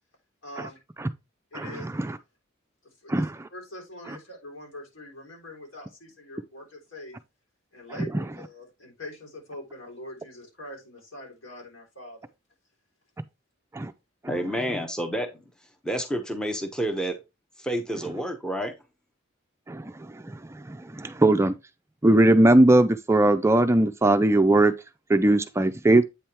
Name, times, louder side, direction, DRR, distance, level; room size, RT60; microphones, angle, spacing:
voice 1, 0.4-0.8 1.5-2.1 3.0-7.2 7.7-12.2, left 1 dB, 80° left, 3.8 m, -43 dB
voice 2, 1.5-2.2 3.1-3.3 13.7-13.9 19.7-19.9 20.3-20.4 20.7-21.5 22.0-24.7 25.1-26.0, right 1 dB, 15° right, 0.4 m, -19 dB
voice 3, 14.3-15.3 15.8-17.1 17.6-18.7, right 1 dB, 5° left, 0.9 m, -29 dB
8.4 x 3.5 x 4.3 m
head